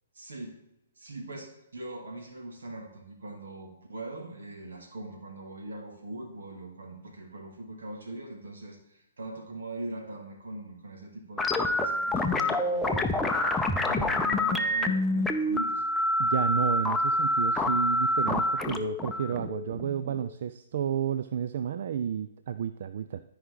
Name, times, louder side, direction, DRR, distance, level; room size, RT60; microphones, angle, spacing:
voice 1, 0.1-0.5 1.0-15.8, right 2 dB, 85° right, 1 dB, 2.4 m, -41 dB
sound 1, 11.4-20.3, left 1 dB, 5° left, 0.6 m, -27 dB
voice 2, 16.2-23.2, right 8 dB, 60° right, 12 dB, 0.3 m, -31 dB
12.5 x 4.9 x 3.9 m, 0.85 s
hypercardioid pair, 140°, 0 cm